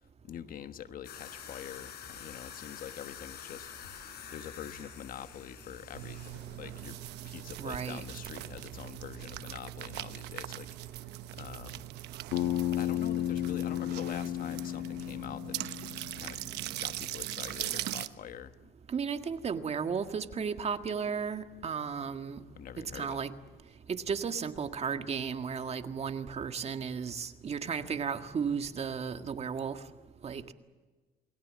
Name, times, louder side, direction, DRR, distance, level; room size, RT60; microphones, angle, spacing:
voice 1, 0.2-3.7 4.3-7.0 7.2-11.1 11.3-11.9 12.7-15.6 16.2-16.4 16.8-18.7 22.6-23.2, left 9 dB, 55° left, 11 dB, 1.3 m, -45 dB
sound 1, 1.0-8.8, left 8 dB, 75° left, 5.8 m, -49 dB
sound 2, 5.9-18.1, right 16 dB, 85° right, 1.1 m, -41 dB
voice 2, 7.6-8.0 18.9-22.4 22.8-23.3 23.9-29.8 30.2-30.4, right 6 dB, 40° right, 8 dB, 1.8 m, -34 dB
Bass guitar, 12.3-16.6, left 12 dB, 90° left, 1.4 m, -33 dB
29.0 x 20.5 x 7.6 m, 1.3 s
cardioid pair, 110°, 17 cm